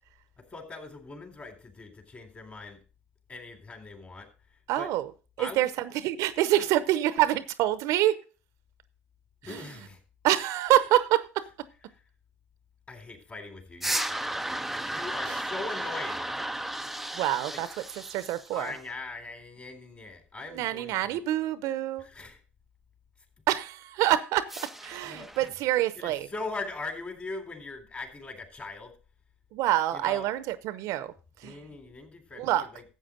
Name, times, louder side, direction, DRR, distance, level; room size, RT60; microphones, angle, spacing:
voice 1, 0.5-2.8 3.3-4.3 4.8-4.9 5.4-5.7 6.6-6.7 9.4-10.0 12.9-14.2 14.8-16.3 17.5-17.6 18.5-21.2 22.0-22.4 25.0-25.5 25.9-28.9 29.9-30.3 31.4-32.8, left 3 dB, 30° left, 3.5 m, -41 dB
voice 2, 4.7-5.1 5.4-8.2 9.5-9.7 10.2-11.4 15.3-15.4 17.2-17.7 18.1-18.7 20.5-22.1 23.5-24.5 24.8-26.3 29.5-31.1 31.4-31.5 32.4-32.7, right 14 dB, 65° right, 0.7 m, -26 dB
sound 1, 13.8-18.8 24.5-25.5, right 1 dB, 5° right, 0.5 m, -34 dB
13.0 x 8.0 x 3.8 m
hypercardioid pair, 70°, 6 cm